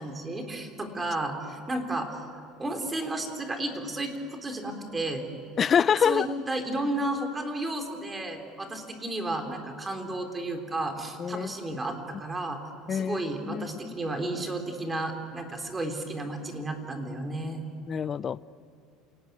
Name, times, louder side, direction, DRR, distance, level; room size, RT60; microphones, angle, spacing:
voice 1, 0.0-2.2 2.6-5.2 6.0-12.6 12.9-17.6, right 2 dB, 15° right, 5 dB, 3.4 m, -33 dB
voice 2, 5.6-6.3 11.2-11.5 12.9-13.2 13.5-14.0 17.9-18.4, left 7 dB, 35° left, 19 dB, 0.5 m, -25 dB
27.5 x 18.5 x 9.4 m, 2.6 s
supercardioid pair, 120°, 0 cm